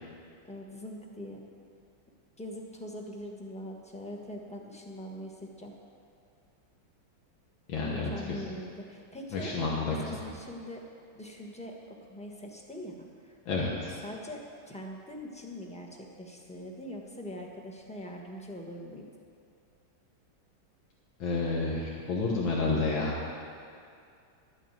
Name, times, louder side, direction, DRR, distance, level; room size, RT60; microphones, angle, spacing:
voice 1, 0.5-1.4 2.4-5.7 7.8-9.5 9.8-10.8 11.1-13.0 13.2-13.7 14.0-19.1, left 1 dB, 5° left, 0 dB, 0.9 m, -42 dB
voice 2, 7.7-8.4 9.3-10.2 13.5-13.9 21.2-23.2, left 3 dB, 75° left, -4 dB, 2.1 m, -30 dB
12.0 x 6.5 x 9.1 m, 2.4 s
omnidirectional pair, 2.2 m